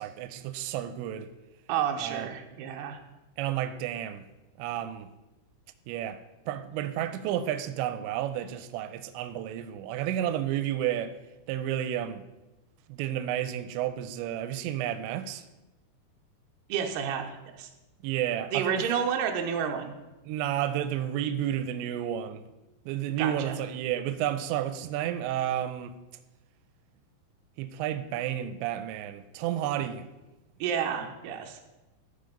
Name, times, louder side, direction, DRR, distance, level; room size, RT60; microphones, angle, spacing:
voice 1, 0.0-1.3 2.0-2.3 3.4-4.2 4.6-5.1 5.9-6.2 6.5-11.2 11.5-12.2 12.9-15.4 18.0-18.8 20.3-22.5 22.9-26.0 27.6-30.1, right 11 dB, 90° right, 2.9 m, -31 dB
voice 2, 1.7-3.0 16.7-17.7 18.5-19.9 23.2-23.6 30.6-31.6, right 8 dB, 75° right, 2.8 m, -30 dB
14.5 x 5.3 x 5.2 m
omnidirectional pair, 5.0 m